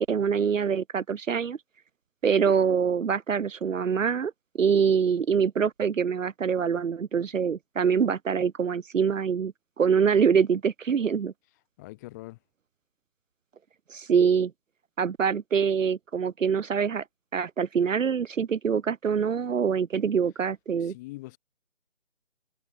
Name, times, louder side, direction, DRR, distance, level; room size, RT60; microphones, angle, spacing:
voice 1, 0.1-1.6 2.2-4.3 4.6-11.3 13.9-14.5 15.0-17.0 17.3-20.9, right 6 dB, 75° right, 0.8 m, -25 dB
voice 2, 11.8-12.4 20.8-21.4, left 20 dB, 15° left, 2.1 m, -42 dB
figure-of-eight pair, 160°, 39 cm